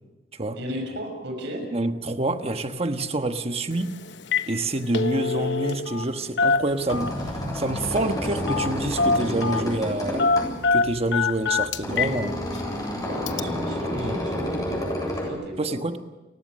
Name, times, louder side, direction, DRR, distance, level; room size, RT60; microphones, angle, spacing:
voice 1, 0.5-1.6 13.0-15.8, equal, 70° right, 4 dB, 6.5 m, -35 dB
voice 2, 1.7-3.9 4.5-10.3 10.7-12.4 13.9-14.2 15.6-16.0, right 2 dB, 35° right, 8 dB, 1.3 m, -27 dB
Telephone, 3.7-3.9 4.2-4.5 4.8-6.1 6.4-7.3 8.5-8.7 9.0-9.7 10.2-12.2 12.6-12.7 13.3-13.4, left 4 dB, 70° left, 1.0 m, -24 dB
sound 1, 6.6-15.3, left 1 dB, 20° left, 7.7 m, -30 dB
30.0 x 16.0 x 6.6 m, 1.1 s
head